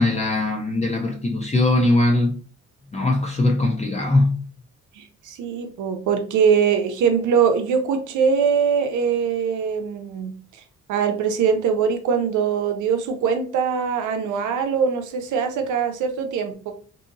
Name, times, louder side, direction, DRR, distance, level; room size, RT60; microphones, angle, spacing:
voice 1, 0.0-2.4 2.9-4.5, left 2 dB, 20° left, 0.6 m, -20 dB
voice 2, 5.0-10.3 10.9-16.7, right 6 dB, 80° right, 0.6 m, -22 dB
2.7 x 2.7 x 2.6 m
cardioid pair, 90°, 30 cm